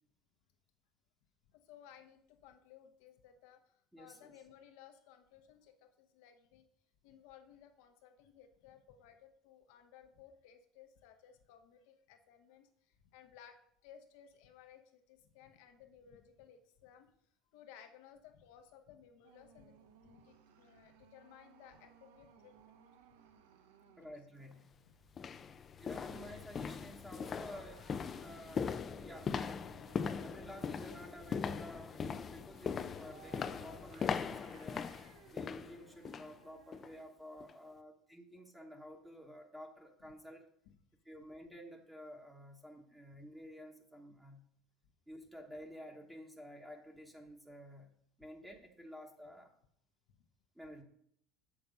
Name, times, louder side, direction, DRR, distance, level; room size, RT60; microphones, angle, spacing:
voice 1, 1.5-6.6 7.0-17.1 17.5-22.8 23.8-24.1 40.0-40.2 40.7-40.8 50.1-50.2, left 9 dB, 80° left, 7 dB, 1.0 m, -60 dB
voice 2, 3.9-4.3 24.0-24.8 25.8-27.9 28.2-29.7 30.2-34.9 35.3-40.5 41.0-44.5 45.1-49.5 50.5-50.8, equal, 5° right, 1 dB, 1.2 m, -52 dB
sound 1, 19.2-37.0, right 8 dB, 90° right, 0.7 m, -62 dB
sound 2, 24.4-24.5 25.1-36.4 36.7-37.0 37.4-37.5, left 6 dB, 35° left, 0.4 m, -40 dB
6.9 x 6.0 x 5.2 m, 0.68 s
supercardioid pair, 105°, 0 cm